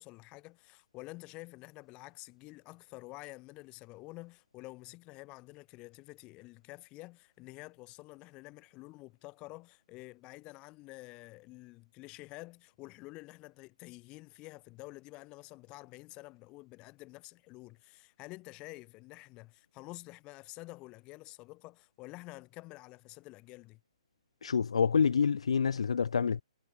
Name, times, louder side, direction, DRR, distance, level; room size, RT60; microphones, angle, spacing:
voice 1, 0.0-23.8, left 22 dB, 30° left, 4.6 m, -49 dB
voice 2, 24.4-26.4, left 6 dB, 70° left, 0.6 m, -27 dB
figure-of-eight pair, 130°, 3 cm